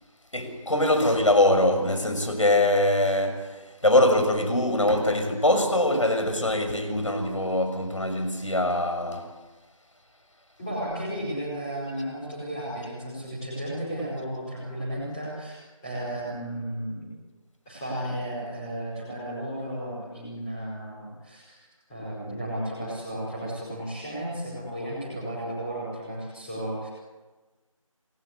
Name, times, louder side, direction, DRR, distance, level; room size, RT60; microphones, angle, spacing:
voice 1, 0.3-9.3, left 1 dB, 65° left, 6.6 m, -23 dB
voice 2, 10.6-15.6 15.8-17.1 17.6-21.6 21.9-26.9, right 1 dB, 5° left, 5.0 m, -34 dB
28.5 x 19.5 x 8.4 m
figure-of-eight pair, 175°, 18 cm